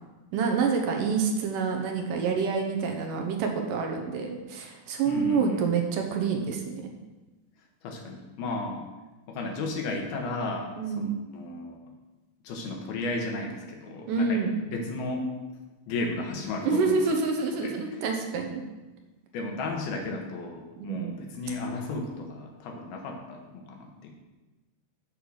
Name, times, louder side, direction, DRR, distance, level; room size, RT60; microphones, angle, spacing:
voice 1, 0.3-6.7 10.8-11.1 14.1-14.5 16.6-18.6 20.8-21.1, right 5 dB, 70° right, 3 dB, 2.3 m, -27 dB
voice 2, 5.1-5.6 7.8-8.8 9.3-10.7 11.0-11.8 12.4-15.3 15.9-17.0 17.6-18.0 19.3-24.1, left 2 dB, 85° left, 2 dB, 3.3 m, -34 dB
7.9 x 6.8 x 6.3 m, 1.2 s
omnidirectional pair, 4.2 m